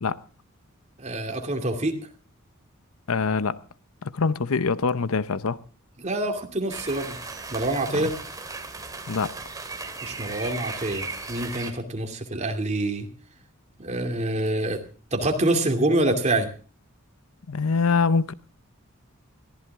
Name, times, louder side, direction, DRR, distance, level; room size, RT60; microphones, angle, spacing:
voice 1, 1.0-2.0 6.0-7.2 7.5-8.2 10.0-13.1 13.8-14.8 15.1-16.5, right 1 dB, 30° right, 2.6 m, -26 dB
voice 2, 3.1-3.6 4.0-5.6 7.9-8.1 9.1-9.4 17.5-18.3, left 4 dB, 75° left, 0.7 m, -24 dB
sound 1, 6.7-11.7, right 3 dB, 15° right, 2.2 m, -36 dB
22.0 x 15.0 x 3.6 m
head